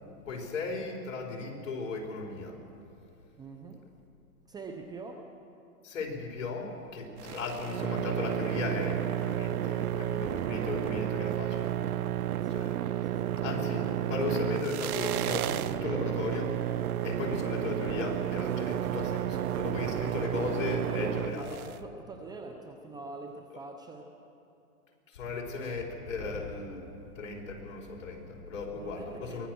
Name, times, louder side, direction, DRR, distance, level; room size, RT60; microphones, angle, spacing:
voice 1, 0.3-2.6 5.8-11.7 12.5-12.8 13.4-16.6 17.0-21.6 25.1-26.8 27.1-29.5, left 3 dB, 60° left, 0 dB, 4.7 m, -36 dB
voice 2, 3.4-3.8 4.5-5.2 12.4-13.7 21.3-24.1 28.7-29.5, right 3 dB, 10° right, 4 dB, 0.7 m, -45 dB
sound 1, 7.2-21.8, right 11 dB, 80° right, 0.9 m, -31 dB
23.5 x 18.5 x 6.2 m, 2.8 s
hypercardioid pair, 145°, 43 cm